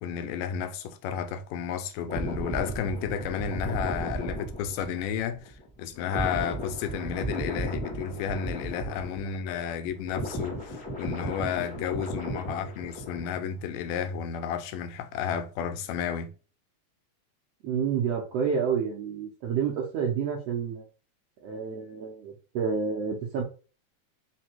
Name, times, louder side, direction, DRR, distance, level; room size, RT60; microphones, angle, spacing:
voice 1, 0.0-16.3, left 7 dB, 85° left, 2.2 m, -32 dB
sound 1, 2.1-9.6 9.8-13.5 13.8-14.1, right 1 dB, 10° left, 0.4 m, -35 dB
voice 2, 17.6-20.9 21.4-23.4, right 6 dB, 80° right, 1.4 m, -29 dB
5.1 x 2.2 x 4.4 m
omnidirectional pair, 3.7 m